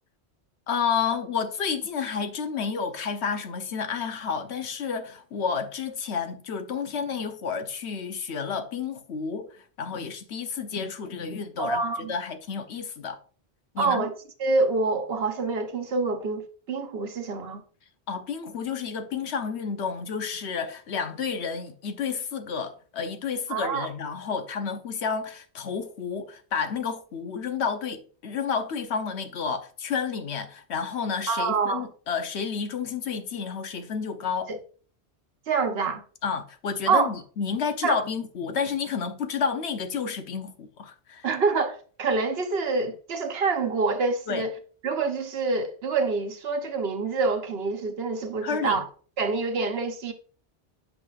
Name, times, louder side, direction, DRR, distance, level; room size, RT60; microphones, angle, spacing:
voice 1, 0.7-13.2 13.7-14.1 18.1-34.5 36.2-41.3 44.3-44.5 48.4-48.8, left 6 dB, 80° left, 1.1 m, -30 dB
voice 2, 11.6-12.1 13.8-14.1 14.4-17.6 23.5-23.9 31.3-31.9 34.5-34.6 35.5-36.0 36.9-37.1 37.8-38.0 41.2-44.6 44.8-48.8 49.2-50.1, right 4 dB, 65° right, 1.2 m, -26 dB
7.9 x 5.9 x 2.4 m
omnidirectional pair, 1.1 m